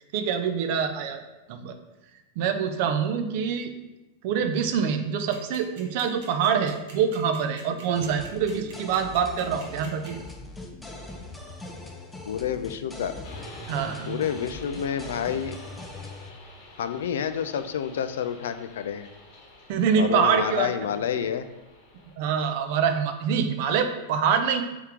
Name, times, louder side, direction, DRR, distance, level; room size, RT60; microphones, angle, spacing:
voice 1, 0.1-1.8 2.4-3.7 4.2-10.2 13.7-14.2 19.7-20.7 22.2-24.6, right 7 dB, 55° right, 8 dB, 0.4 m, -25 dB
sound 1, 5.3-10.3, right 5 dB, 70° right, 1.0 m, -47 dB
sound 2, 7.9-16.3, left 2 dB, 5° left, 0.4 m, -41 dB
voice 2, 12.3-13.2 14.0-15.5 16.8-19.1 20.0-21.5, left 8 dB, 90° left, 10 dB, 0.3 m, -29 dB
sound 3, 13.2-22.2, left 2 dB, 55° left, 0.9 m, -48 dB
3.6 x 3.5 x 3.0 m, 1.0 s
supercardioid pair, 150°, 0 cm